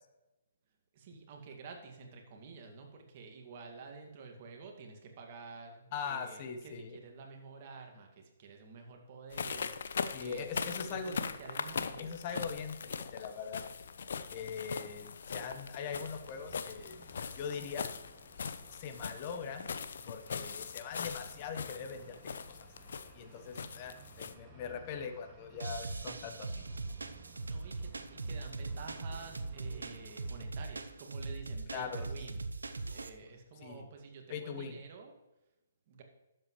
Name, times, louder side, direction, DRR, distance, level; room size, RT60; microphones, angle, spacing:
voice 1, 0.9-12.1 23.3-23.4 27.2-32.4 32.9-35.1 35.9-36.0, right 4 dB, 45° right, 2 dB, 2.1 m, -50 dB
voice 2, 5.9-7.0 10.1-11.1 12.0-13.7 14.3-17.0 17.4-17.9 18.7-19.7 20.1-22.2 22.5-22.6 23.1-26.6 31.7-32.0 33.6-33.8 34.3-34.8, left 6 dB, 40° left, 8 dB, 1.2 m, -41 dB
sound 1, 9.3-24.3, left 6 dB, 65° left, 0.7 m, -41 dB
sound 2, 16.1-30.4, right 2 dB, 15° right, 2.0 m, -57 dB
sound 3, 25.6-33.1, right 3 dB, 85° right, 0.7 m, -41 dB
11.5 x 7.9 x 3.2 m, 1.0 s
hypercardioid pair, 135°, 0 cm